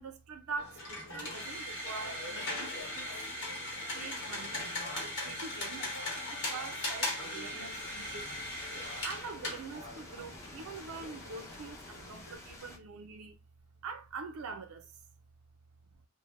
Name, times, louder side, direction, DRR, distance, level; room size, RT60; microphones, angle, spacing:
voice 1, 0.0-3.1 3.9-8.5 9.0-13.4 13.8-15.0, right 4 dB, 90° right, 0.5 m, -44 dB
sound 1, 0.6-12.3, left 1 dB, 60° left, 0.9 m, -39 dB
sound 2, 7.7-12.8, left 2 dB, 15° left, 0.4 m, -50 dB
2.1 x 2.0 x 3.0 m
head